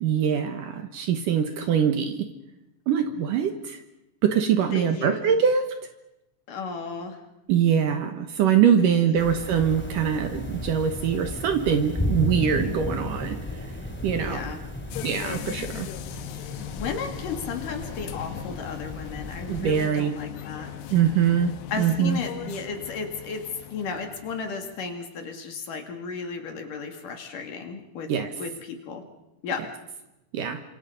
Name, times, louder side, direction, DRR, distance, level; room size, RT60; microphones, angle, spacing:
voice 1, 0.0-2.3 2.9-3.8 4.2-5.7 7.5-13.7 14.0-14.4 15.0-15.9 19.5-20.1 20.9-21.5 21.8-22.2 28.1-28.3 30.3-30.6, right 8 dB, 65° right, 7 dB, 2.5 m, -23 dB
voice 2, 4.7-5.2 6.5-7.2 8.8-9.3 14.2-14.6 16.8-20.7 21.7-28.1 28.4-29.0 29.4-29.7, left 5 dB, 55° left, 4 dB, 3.7 m, -34 dB
sound 1, 9.1-19.8, left 1 dB, 5° left, 1.8 m, -34 dB
sound 2, 14.9-24.8, left 10 dB, 85° left, 3.2 m, -39 dB
29.0 x 26.5 x 5.3 m, 0.91 s
omnidirectional pair, 4.7 m